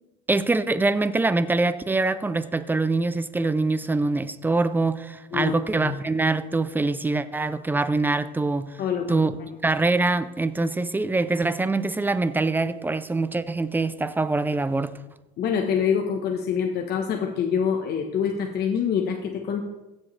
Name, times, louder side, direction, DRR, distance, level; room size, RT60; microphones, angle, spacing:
voice 1, 0.3-8.8 9.1-9.3 9.6-15.0, right 3 dB, 10° right, 0.5 m, -24 dB
voice 2, 5.3-6.0 8.8-9.2 15.4-19.6, left 7 dB, 55° left, 1.1 m, -26 dB
15.5 x 7.4 x 3.3 m
cardioid pair, 120°, 20 cm